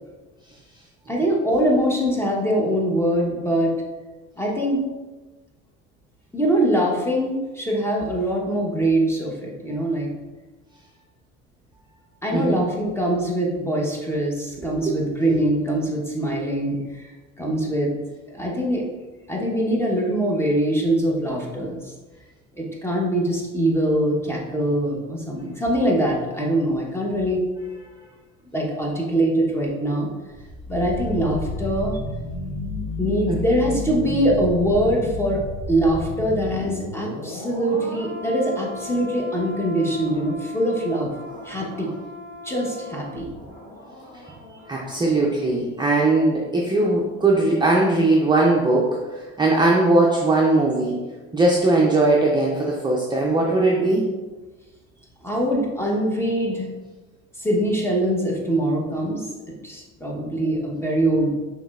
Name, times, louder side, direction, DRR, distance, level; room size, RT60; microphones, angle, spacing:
voice 1, 1.1-3.7 4.4-4.8 6.3-10.1 12.2-17.1 17.4-17.9 18.3-18.8 19.3-21.9 22.6-27.4 28.5-30.1 30.7-32.0 33.0-35.4 35.7-41.1 41.4-41.9 42.4-43.3 55.2-56.7 57.4-59.2 59.6-61.3, right 1 dB, 10° left, -2 dB, 1.0 m, -23 dB
voice 2, 12.3-12.6 14.9-15.0 33.3-33.4 44.7-50.9 51.3-54.0, right 2 dB, 15° right, -3 dB, 0.6 m, -19 dB
sound 1, 30.2-45.2 45.5-45.6, left 1 dB, 85° left, 1.5 m, -34 dB
6.0 x 3.2 x 2.4 m, 1.2 s
supercardioid pair, 90°, 31 cm